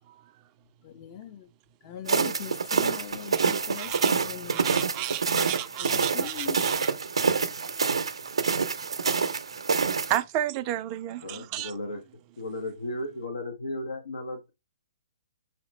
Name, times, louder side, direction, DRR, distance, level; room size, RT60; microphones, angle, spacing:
voice 1, 0.8-1.5 1.8-4.9 5.8-6.6, left 9 dB, 40° left, 0.6 m, -40 dB
sound 1, 2.1-10.2, right 5 dB, 80° right, 0.6 m, -27 dB
voice 2, 3.3-4.1 4.5-6.9 10.1-11.8, right 13 dB, 30° right, 0.3 m, -32 dB
voice 3, 11.2-12.0 12.4-14.5, left 1 dB, 80° left, 0.8 m, -35 dB
4.1 x 2.8 x 3.1 m
hypercardioid pair, 130°, 3 cm